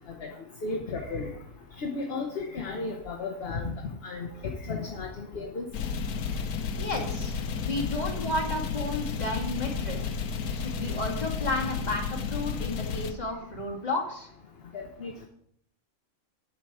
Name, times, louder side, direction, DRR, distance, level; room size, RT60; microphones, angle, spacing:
voice 1, 0.6-1.3 1.8-3.8 4.0-5.7 14.7-15.3, left 3 dB, 50° left, 1 dB, 1.2 m, -34 dB
sound 1, 5.7-13.1, left 5 dB, 85° left, 1.3 m, -32 dB
voice 2, 6.8-10.0 10.5-14.3, left 2 dB, 30° left, -1 dB, 2.2 m, -32 dB
8.8 x 7.7 x 4.7 m, 0.68 s
omnidirectional pair, 1.5 m